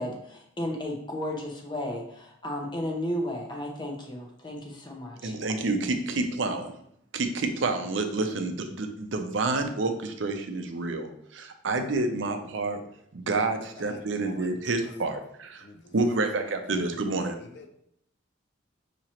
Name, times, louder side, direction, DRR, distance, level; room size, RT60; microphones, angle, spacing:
voice 1, 0.0-5.4, left 1 dB, 25° left, 0.8 m, -34 dB
voice 2, 5.2-6.7 7.1-12.8 13.1-15.7 15.9-17.4, right 3 dB, 70° right, 0.6 m, -29 dB
voice 3, 13.8-15.0 15.6-16.4 16.9-17.7, left 3 dB, 60° left, 0.6 m, -48 dB
6.1 x 2.9 x 2.9 m
head